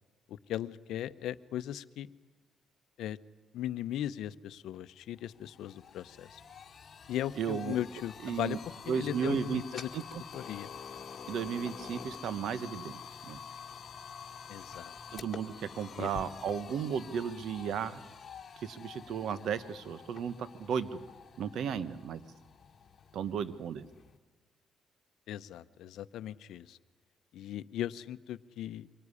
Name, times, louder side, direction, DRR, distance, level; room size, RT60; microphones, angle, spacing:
voice 1, 0.3-2.1 3.0-3.2 3.5-6.4 7.1-8.6 8.9-9.9 10.3-10.7 14.5-14.9 16.0-16.1 25.3-26.8 27.3-28.9, left 12 dB, 80° left, 15 dB, 0.7 m, -38 dB
sound 1, 4.7-4.8 5.2-24.2, left 6 dB, 45° left, 1.8 m, -48 dB
voice 2, 7.4-7.8 8.2-8.6 8.9-9.6 9.9-10.2 11.3-13.4 15.1-18.0 18.6-21.0 21.4-22.2 23.1-23.9, right 7 dB, 70° right, 15 dB, 1.1 m, -34 dB
24.0 x 18.5 x 9.8 m, 1.2 s
cardioid pair, 90°, 0 cm